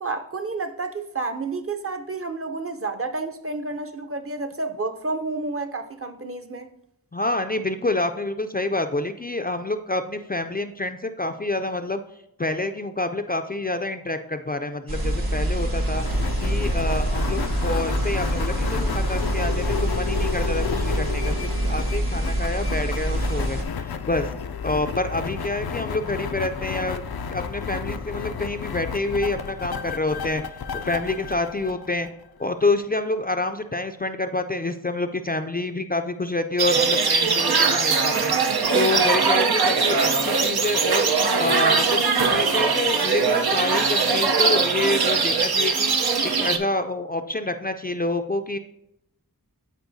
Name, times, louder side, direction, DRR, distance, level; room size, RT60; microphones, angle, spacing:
voice 1, 0.0-6.7, right 3 dB, 40° right, 0.7 m, -30 dB
voice 2, 7.1-12.0 12.4-16.0 16.4-24.3 24.6-27.0 27.3-30.4 30.8-32.1 32.4-41.1 41.4-45.9 46.2-48.6, left 2 dB, 25° left, 0.4 m, -27 dB
sound 1, 14.9-23.6, right 1 dB, 75° right, 1.8 m, -25 dB
sound 2, 16.0-32.5, left 6 dB, 85° left, 0.5 m, -32 dB
sound 3, 36.6-46.6, right 4 dB, 90° right, 0.7 m, -21 dB
12.5 x 4.3 x 2.7 m
wide cardioid pair, 60°, 36 cm